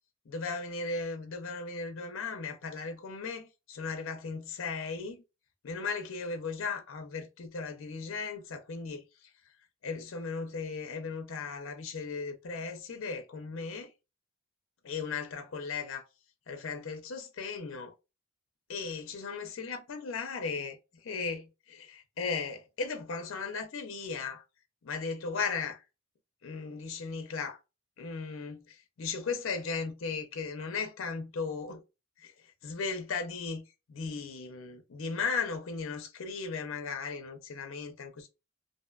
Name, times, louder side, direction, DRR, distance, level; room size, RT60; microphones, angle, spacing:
voice 1, 0.3-5.2 5.6-9.3 9.8-13.9 14.8-16.1 16.5-17.9 18.7-24.4 24.8-25.8 26.4-27.6 28.0-31.8 32.2-33.6 33.9-38.3, left 4 dB, 65° left, 0.4 m, -36 dB
2.6 x 2.1 x 2.3 m
head